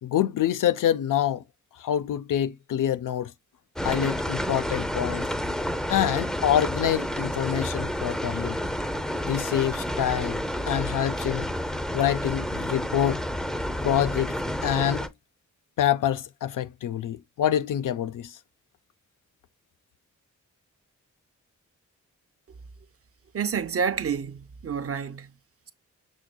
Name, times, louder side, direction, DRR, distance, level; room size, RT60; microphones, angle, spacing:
voice 1, 0.0-1.4 1.8-3.3 3.8-5.3 5.9-8.6 9.2-10.4 10.7-11.5 11.9-13.2 13.8-14.4 14.6-15.1 15.8-18.4, left 10 dB, 90° left, 0.5 m, -26 dB
sound 1, 3.8-15.1, equal, ahead, 0.5 m, -30 dB
voice 2, 23.3-25.3, right 6 dB, 50° right, 0.6 m, -29 dB
6.4 x 3.5 x 2.2 m
wide cardioid pair, 95°, 31 cm